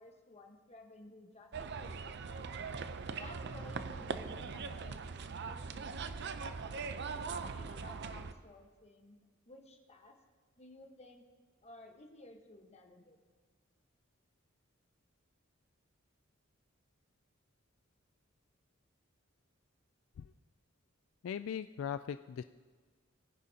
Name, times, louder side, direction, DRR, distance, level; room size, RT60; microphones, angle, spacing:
voice 1, 0.0-2.2 3.1-6.5 7.1-7.3 7.6-9.2 9.5-10.2 10.6-11.2 11.6-13.2, left 2 dB, 30° left, 3 dB, 1.2 m, -55 dB
sound 1, 1.5-8.3, right 5 dB, 55° right, 0.6 m, -41 dB
voice 2, 21.2-22.4, left 8 dB, 70° left, 12 dB, 0.3 m, -39 dB
20.0 x 10.0 x 2.8 m, 1.5 s
head